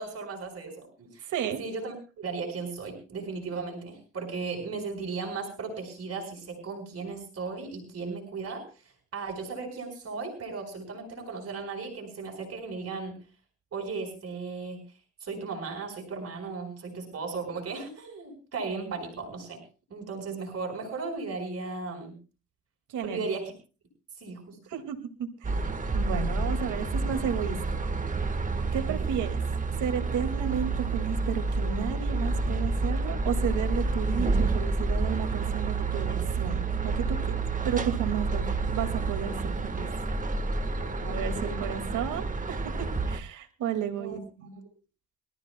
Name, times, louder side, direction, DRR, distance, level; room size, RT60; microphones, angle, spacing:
voice 1, 0.0-1.3 1.6-13.2 13.7-14.8 15.2-19.6 19.9-22.1 23.0-23.5 24.2-24.6 28.7-29.1 40.7-41.6 43.9-44.2, right 4 dB, 55° right, 1 dB, 4.6 m, -36 dB
voice 2, 1.3-1.6 22.9-23.2 24.7-25.6 25.9-27.6 28.7-29.4 29.8-37.4 37.6-39.9 41.0-44.6, right 8 dB, 80° right, 6 dB, 2.2 m, -33 dB
sound 1, 25.4-43.2, right 3 dB, 25° right, 1.4 m, -29 dB
26.0 x 13.5 x 2.2 m, 0.35 s
cardioid pair, 90°, 30 cm